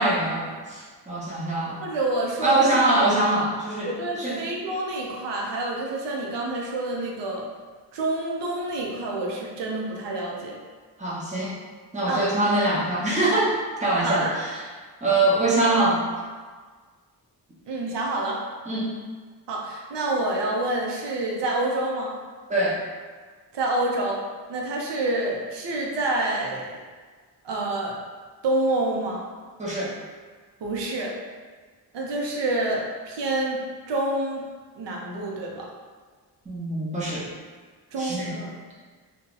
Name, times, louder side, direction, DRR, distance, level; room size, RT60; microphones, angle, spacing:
voice 1, 0.0-1.8 2.4-3.9 4.2-4.4 11.0-11.5 11.9-14.6 15.0-16.1 18.7-18.9 22.5-22.8 29.6-30.0 36.5-37.3 38.0-38.3, right 2 dB, 15° right, -6 dB, 0.7 m, -23 dB
voice 2, 1.8-2.7 3.8-7.4 7.9-10.6 12.1-12.3 14.0-14.3 17.7-18.4 19.5-22.1 23.5-24.2 24.5-26.7 27.4-28.0 28.4-29.2 30.6-31.1 31.9-33.6 33.9-34.4 34.8-35.7 37.9-38.5, right 2 dB, 85° right, -2 dB, 0.7 m, -27 dB
2.7 x 2.3 x 3.7 m, 1.5 s
wide cardioid pair, 150°, 41 cm